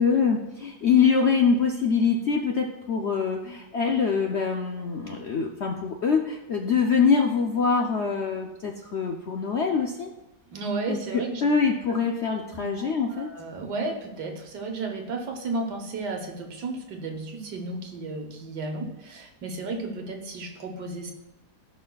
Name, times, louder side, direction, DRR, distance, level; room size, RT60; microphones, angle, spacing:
voice 1, 0.0-10.1 10.9-13.3, left 5 dB, 60° left, 2 dB, 0.7 m, -24 dB
voice 2, 10.5-11.4 12.5-21.1, right 3 dB, 75° right, 3 dB, 1.8 m, -33 dB
16.5 x 5.6 x 2.3 m, 0.96 s
omnidirectional pair, 1.8 m